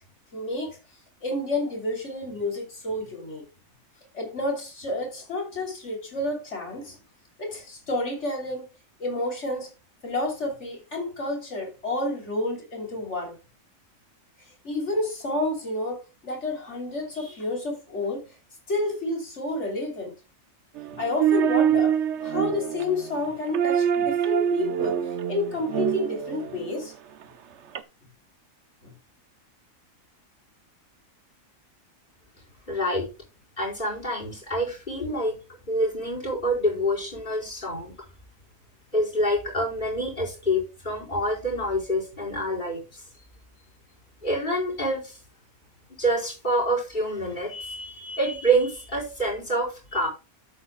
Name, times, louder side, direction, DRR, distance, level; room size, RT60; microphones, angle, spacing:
voice 1, 0.3-0.8 1.2-3.5 4.1-7.0 7.4-8.7 9.0-9.7 10.0-13.4 14.6-18.3 18.7-20.1 20.9-21.9 22.2-25.0 25.3-26.9 28.8-28.9, left 2 dB, 55° left, 3.3 m, -30 dB
sound 1, 20.8-26.7 27.8-27.9, right 9 dB, 60° right, 1.0 m, -25 dB
voice 2, 32.7-33.1 33.6-35.4 35.7-37.9 38.9-43.0 44.2-45.2 46.0-50.1, right 1 dB, 35° left, 4.7 m, -27 dB
12.0 x 8.4 x 2.2 m
omnidirectional pair, 1.4 m